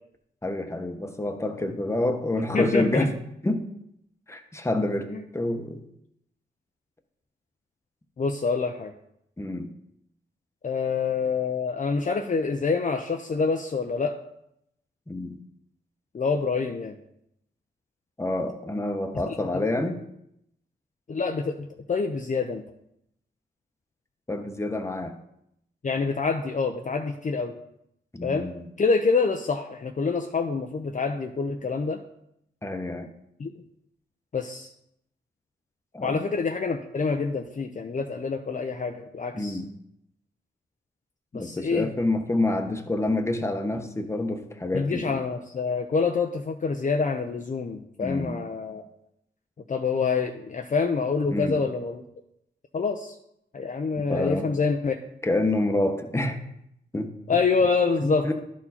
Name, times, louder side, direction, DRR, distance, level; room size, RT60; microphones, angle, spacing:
voice 1, 0.4-3.1 3.4-3.7 4.3-5.8 9.4-9.7 15.1-15.4 18.2-20.0 24.3-25.2 28.1-28.6 32.6-33.1 35.9-36.3 39.3-39.7 41.3-45.2 48.0-48.3 51.3-51.6 54.0-54.5 55.2-56.4 56.9-57.1 58.2-58.3, left 2 dB, 15° left, 5 dB, 1.0 m, -27 dB
voice 2, 2.5-3.1 5.1-5.2 8.2-8.9 10.6-14.1 16.1-16.9 19.3-19.6 21.1-22.6 25.8-27.5 28.2-28.5 28.8-32.0 33.4-33.5 34.3-34.7 36.0-39.6 41.3-41.9 44.7-48.8 49.7-52.0 52.7-53.2 53.5-55.0 57.3-58.3, left 4 dB, 40° left, 4 dB, 0.6 m, -26 dB
11.5 x 4.5 x 4.3 m, 0.77 s
cardioid pair, 65°, 20 cm